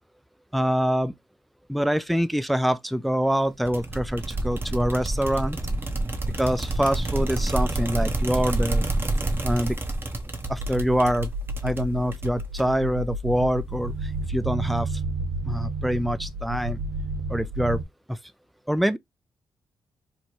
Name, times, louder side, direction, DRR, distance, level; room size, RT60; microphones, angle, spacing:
voice 1, 0.5-1.1 1.7-5.6 6.2-8.8 9.4-9.8 10.5-11.3 11.6-15.0 15.4-16.8 17.3-17.8 18.1-18.2 18.7-19.0, equal, ahead, 0.3 m, -25 dB
sound 1, 3.7-12.9, right 2 dB, 25° right, 0.8 m, -28 dB
sound 2, 10.4-17.8, right 2 dB, 75° right, 0.6 m, -31 dB
3.0 x 2.2 x 4.2 m
cardioid pair, 70°, 8 cm